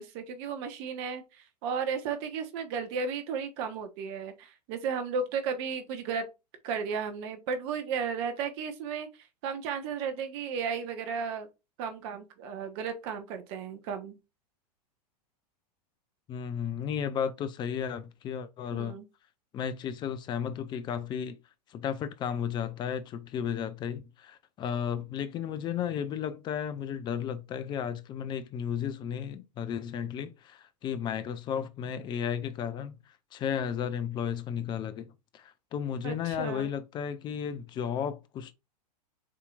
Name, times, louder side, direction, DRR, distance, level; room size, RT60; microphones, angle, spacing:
voice 1, 0.0-6.3 6.6-9.1 9.4-11.5 11.8-14.2 18.7-19.1 36.0-36.7, right 6 dB, 40° right, 1.0 m, -34 dB
voice 2, 16.3-19.0 19.5-21.4 21.7-33.0 33.3-38.5, left 8 dB, 20° left, 0.5 m, -34 dB
7.3 x 2.9 x 2.4 m
figure-of-eight pair, 95°, 21 cm